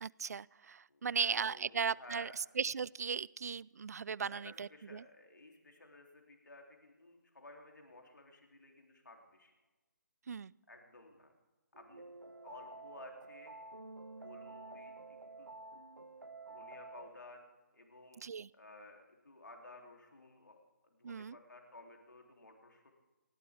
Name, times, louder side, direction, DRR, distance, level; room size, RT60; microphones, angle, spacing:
voice 1, 0.0-5.0 10.3-10.5 18.2-18.5 21.0-21.4, right 6 dB, 55° right, 24 dB, 0.4 m, -37 dB
voice 2, 0.9-2.4 4.2-9.5 10.7-11.3 11.8-12.1 12.4-13.6 14.2-15.6 16.5-17.4 17.7-18.2 18.5-20.6 20.9-22.9, left 2 dB, 75° left, 2 dB, 3.2 m, -55 dB
sound 1, 11.7-17.1, right 3 dB, 85° right, 1.3 m, -50 dB
29.0 x 11.5 x 3.6 m, 1.2 s
figure-of-eight pair, 145°, 10 cm